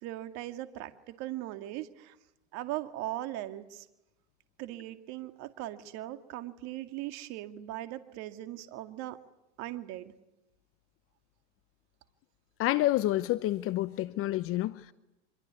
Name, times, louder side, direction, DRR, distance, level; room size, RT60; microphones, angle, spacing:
voice 1, 0.0-2.2 2.5-3.9 4.6-9.2 9.6-10.1, right 14 dB, 55° right, 2.2 m, -39 dB
voice 2, 12.6-14.9, left 15 dB, 40° left, 0.9 m, -28 dB
26.0 x 23.0 x 9.7 m
hypercardioid pair, 105°, 33 cm